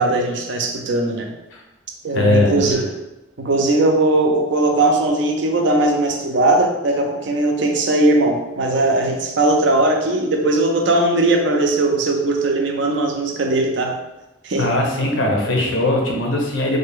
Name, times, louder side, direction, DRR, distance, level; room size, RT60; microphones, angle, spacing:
voice 1, 0.0-1.3 2.0-2.9 3.4-14.0 14.4-14.7, right 2 dB, 70° right, 2 dB, 0.5 m, -19 dB
voice 2, 2.1-2.8 14.6-16.8, left 1 dB, 85° left, 0 dB, 0.7 m, -20 dB
3.3 x 2.2 x 3.6 m, 0.99 s
head